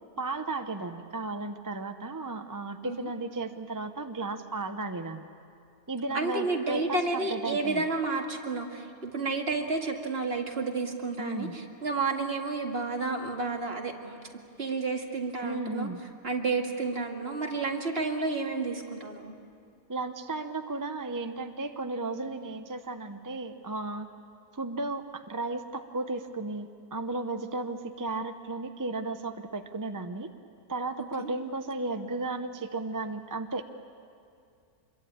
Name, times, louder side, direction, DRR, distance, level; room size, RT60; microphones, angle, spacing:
voice 1, 0.2-5.3 5.9-7.9 11.2-11.5 15.4-16.0 19.9-24.1 24.5-30.3 30.7-33.6, right 3 dB, 20° right, 7 dB, 0.5 m, -34 dB
voice 2, 6.1-14.2 14.6-15.9 16.2-19.3 31.2-31.3, right 3 dB, 40° right, 1 dB, 2.2 m, -31 dB
26.0 x 22.5 x 8.7 m, 2.4 s
omnidirectional pair, 1.6 m